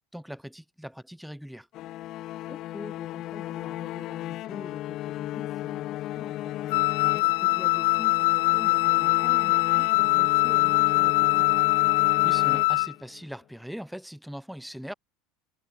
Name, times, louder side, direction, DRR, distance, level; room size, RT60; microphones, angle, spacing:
voice 1, 0.1-1.7 12.2-14.9, equal, ahead, 4.0 m, -40 dB
sound 1, 1.7-13.2, left 15 dB, 45° left, 1.1 m, -35 dB
voice 2, 2.5-11.5, left 4 dB, 15° left, 3.1 m, -45 dB
Wind instrument woodwind instrument, 6.7-12.9, left 25 dB, 75° left, 0.8 m, -22 dB
supercardioid pair, 125°, 0 cm